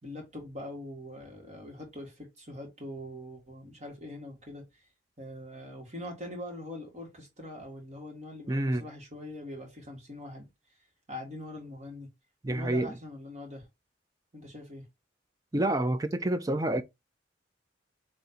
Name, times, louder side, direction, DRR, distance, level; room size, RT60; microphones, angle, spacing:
voice 1, 0.0-4.9 5.2-10.5 11.1-12.1 12.5-13.7 14.3-14.9, left 1 dB, 40° right, 1.9 m, -43 dB
voice 2, 8.5-8.8 12.4-12.9 15.5-16.8, right 1 dB, 20° right, 0.5 m, -28 dB
4.3 x 3.1 x 3.9 m
head